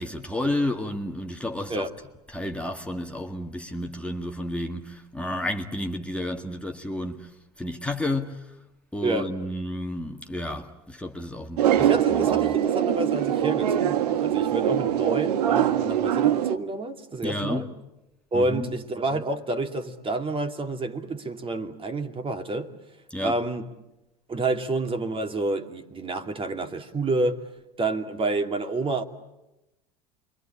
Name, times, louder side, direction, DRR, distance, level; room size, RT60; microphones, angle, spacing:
voice 1, 0.0-1.9 2.3-7.3 7.6-8.5 8.9-12.5 17.2-17.7 18.3-18.7 23.1-23.4, left 1 dB, 5° left, 1.8 m, -31 dB
voice 2, 9.0-9.5 11.8-17.7 18.3-22.7 23.2-23.7 24.3-27.5 27.8-29.0, right 2 dB, 25° right, 2.5 m, -29 dB
sound 1, 11.6-16.6, right 10 dB, 75° right, 1.2 m, -23 dB
29.0 x 23.5 x 8.8 m
hypercardioid pair, 80°, 20 cm